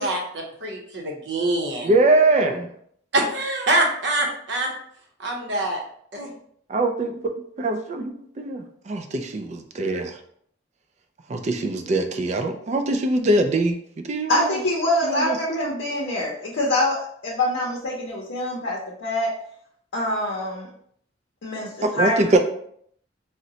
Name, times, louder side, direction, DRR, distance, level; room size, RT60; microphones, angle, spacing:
voice 1, 0.0-1.9 3.1-4.7 5.2-5.8 6.1-6.3, right 2 dB, 70° right, 0 dB, 0.7 m, -25 dB
voice 2, 1.8-2.7 6.7-7.1 7.6-10.2 11.3-13.8 14.0-14.6 15.0-15.4 21.8-22.4, right 2 dB, 40° right, 5 dB, 0.3 m, -22 dB
voice 3, 14.3-19.3 19.9-20.7 21.4-22.4, left 1 dB, 90° left, -4 dB, 0.6 m, -25 dB
3.8 x 2.1 x 2.7 m, 0.66 s
head